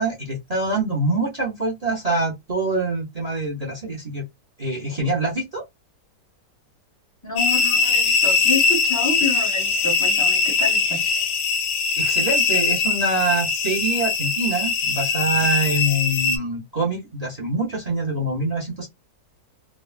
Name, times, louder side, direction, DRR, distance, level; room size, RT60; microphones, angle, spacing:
voice 1, 0.0-4.2 4.6-5.6 12.0-18.9, right 2 dB, 40° right, 0.5 m, -25 dB
voice 2, 7.2-11.0, left 2 dB, 20° left, 0.5 m, -28 dB
sound 1, 7.4-16.4, left 5 dB, 70° left, 1.0 m, -21 dB
3.3 x 2.0 x 2.4 m
omnidirectional pair, 1.9 m